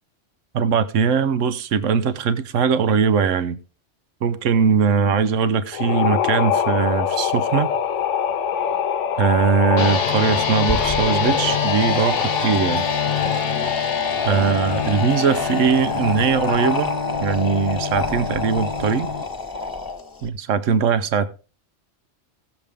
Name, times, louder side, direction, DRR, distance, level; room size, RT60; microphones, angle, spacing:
voice 1, 0.5-3.6 4.2-7.7 9.2-12.8 14.2-16.9 17.2-19.1 20.2-21.3, right 6 dB, 85° right, 1.1 m, -20 dB
sound 1, 5.7-15.5, left 7 dB, 80° left, 1.0 m, -25 dB
sound 2, 9.8-19.2, left 6 dB, 55° left, 1.0 m, -26 dB
sound 3, 10.6-20.3, left 3 dB, 15° left, 1.3 m, -29 dB
17.0 x 7.1 x 3.5 m
omnidirectional pair, 1.3 m